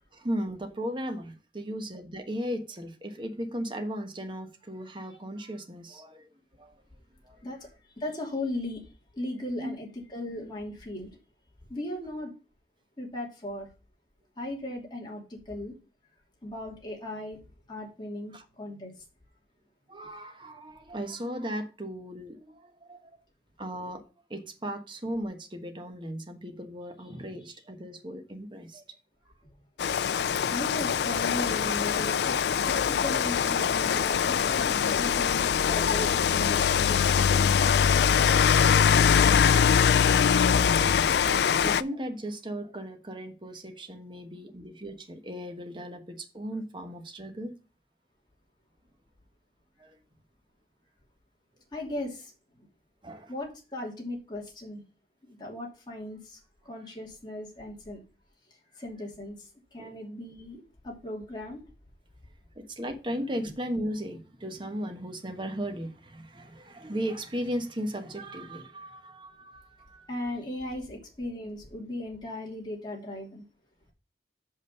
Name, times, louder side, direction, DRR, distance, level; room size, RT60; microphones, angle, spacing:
voice 1, 0.1-6.3 6.6-6.7 7.2-7.4 9.6-9.7 18.3-18.4 19.9-23.1 23.6-28.8 30.0-30.2 40.7-47.5 49.8-50.0 53.0-53.3 59.8-60.0 62.6-70.1, equal, 25° right, 1.2 m, -36 dB
voice 2, 8.0-8.8 9.1-11.1 11.7-12.3 13.0-13.7 14.4-15.7 16.4-17.4 17.7-18.9 30.5-32.4 32.6-37.4 51.7-52.3 53.3-54.8 55.2-56.4 56.6-58.0 58.7-59.3 59.7-61.6 70.1-73.4, left 1 dB, 25° left, 2.8 m, -37 dB
Rain, 29.8-41.8, left 7 dB, 65° left, 0.4 m, -23 dB
6.2 x 5.5 x 6.7 m
head